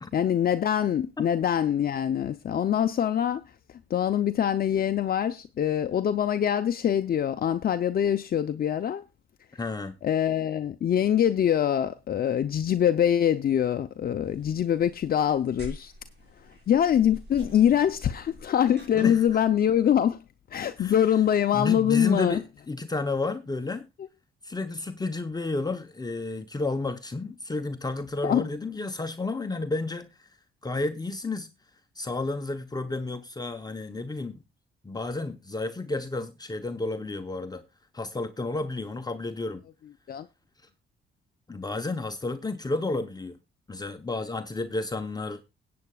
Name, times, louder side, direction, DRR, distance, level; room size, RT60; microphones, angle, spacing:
voice 1, 0.1-3.4 3.9-9.0 10.0-15.9 16.7-20.2 20.5-22.4 28.2-28.5 40.1-40.3, left 9 dB, 50° left, 0.6 m, -24 dB
voice 2, 9.5-10.0 18.9-19.2 20.8-20.9 21.5-23.9 24.4-30.3 30.6-31.5 32.0-34.4 34.8-37.6 37.9-39.6 41.5-43.4 43.7-45.4, left 2 dB, 20° left, 0.9 m, -31 dB
sound 1, 14.2-20.0, right 1 dB, 55° right, 5.5 m, -46 dB
20.5 x 8.6 x 2.3 m
cardioid pair, 90°, 20 cm